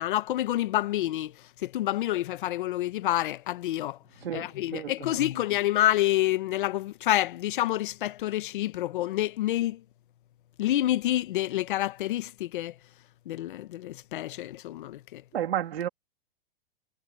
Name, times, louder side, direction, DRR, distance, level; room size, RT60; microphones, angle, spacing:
voice 1, 0.0-4.0 4.3-9.8 10.6-12.8 13.2-15.2, left 14 dB, 55° left, 1.3 m, -28 dB
voice 2, 4.2-5.2 15.3-15.9, right 11 dB, 85° right, 3.3 m, -32 dB
supercardioid pair, 165°, 30 cm